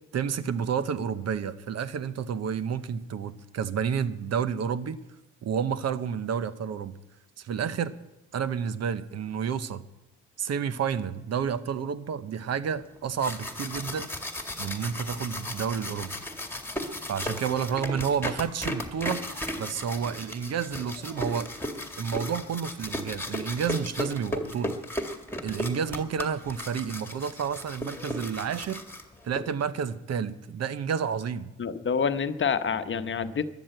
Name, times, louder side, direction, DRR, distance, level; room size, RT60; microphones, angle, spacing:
voice 1, 0.1-5.0 5.4-7.0 7.4-7.9 8.3-9.8 10.4-14.1 14.6-16.1 17.1-19.2 19.6-21.5 22.0-24.7 25.4-28.8 29.2-31.5, right 7 dB, 55° right, 14 dB, 0.9 m, -30 dB
sound 1, 13.0-29.4, left 1 dB, 5° left, 2.0 m, -35 dB
voice 2, 31.6-33.5, left 6 dB, 40° left, 10 dB, 1.0 m, -27 dB
13.5 x 9.9 x 7.9 m, 0.94 s
cardioid pair, 90°, 30 cm